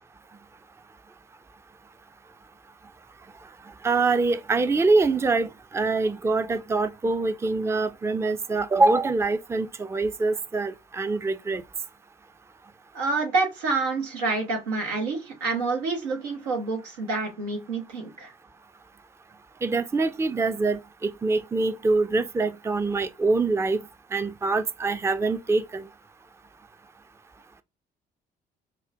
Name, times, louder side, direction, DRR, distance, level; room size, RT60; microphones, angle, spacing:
voice 1, 3.8-11.6 19.6-23.8 24.1-25.9, right 3 dB, 15° right, 0.4 m, -24 dB
voice 2, 12.9-18.3, right 3 dB, 90° right, 0.9 m, -28 dB
5.6 x 2.1 x 2.5 m
hypercardioid pair, 55°, 20 cm